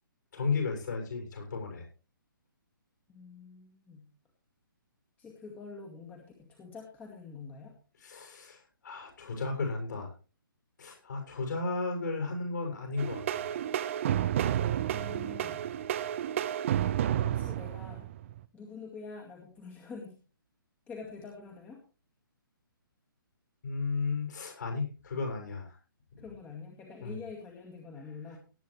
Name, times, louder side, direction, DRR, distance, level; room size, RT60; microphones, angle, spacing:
voice 1, 0.3-1.9 8.0-10.1 10.8-13.5 23.6-25.8 26.2-26.3 27.0-27.2, left 4 dB, 55° left, 2 dB, 6.9 m, -34 dB
voice 2, 3.1-4.1 5.2-7.7 14.9-15.6 17.2-18.1 18.5-20.2 20.9-21.8 26.2-28.4, left 4 dB, 15° left, 0 dB, 2.0 m, -46 dB
sound 1, 13.0-18.4, right 11 dB, 35° right, 0.7 m, -31 dB
18.5 x 9.5 x 3.2 m, 0.34 s
figure-of-eight pair, 130°, 12 cm